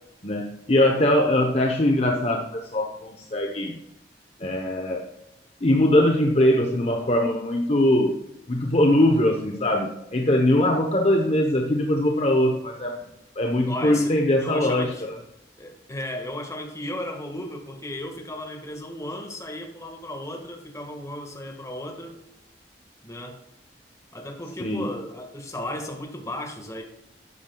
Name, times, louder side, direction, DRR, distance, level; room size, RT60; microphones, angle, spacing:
voice 1, 0.2-3.8 4.4-5.1 5.6-8.2 8.5-13.0 13.4-15.1 24.6-24.9, left 1 dB, 35° left, 2 dB, 0.9 m, -21 dB
voice 2, 13.7-15.0 15.6-22.2 23.0-23.4 24.1-26.8, left 1 dB, 15° left, 2 dB, 1.6 m, -35 dB
12.5 x 8.8 x 2.3 m, 0.82 s
head